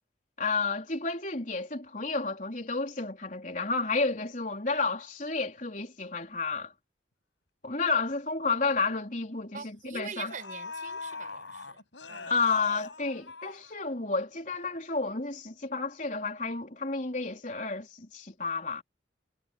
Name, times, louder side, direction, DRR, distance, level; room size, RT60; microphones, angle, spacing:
voice 1, 0.4-6.7 7.6-10.3 12.2-18.8, left 4 dB, 45° left, 4.1 m, -31 dB
sound 1, 8.1-8.2 8.6-8.8 9.8-9.9 10.3-14.2 14.5-14.6, left 4 dB, 85° left, 7.4 m, -42 dB
voice 2, 9.5-12.4, right 5 dB, 45° right, 6.0 m, -44 dB
head